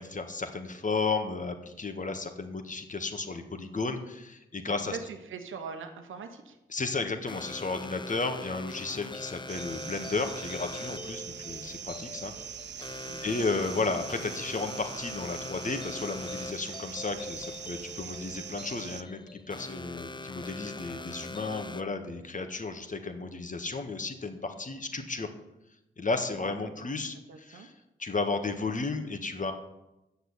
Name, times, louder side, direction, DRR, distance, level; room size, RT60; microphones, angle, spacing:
voice 1, 0.0-5.0 6.7-12.3 13.2-25.3 26.0-27.7 28.0-29.5, left 3 dB, 40° left, 6 dB, 1.5 m, -33 dB
voice 2, 4.8-6.6 13.1-13.4 26.4-27.7, right 5 dB, 85° right, 6 dB, 1.1 m, -43 dB
sound 1, 7.3-21.8, left 3 dB, 25° left, 0.6 m, -43 dB
sound 2, 9.5-19.0, right 8 dB, 60° right, 0.5 m, -42 dB
8.4 x 6.6 x 8.2 m, 0.93 s
cardioid pair, 45°, 20 cm